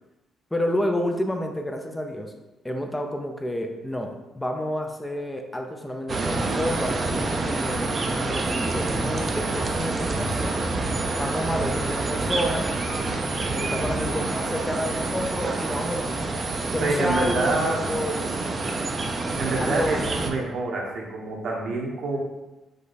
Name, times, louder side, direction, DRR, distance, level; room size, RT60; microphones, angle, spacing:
voice 1, 0.5-2.3 2.6-10.7 11.2-12.7 13.5-16.3 16.7-18.4 19.6-20.2, left 1 dB, 10° left, 4 dB, 0.5 m, -30 dB
sound 1, 6.1-20.3, right 3 dB, 40° right, 0.5 m, -27 dB
voice 2, 16.8-17.8 19.4-22.2, right 2 dB, 70° right, -1 dB, 1.0 m, -27 dB
5.1 x 2.3 x 4.0 m, 1.1 s
cardioid pair, 90°, 0 cm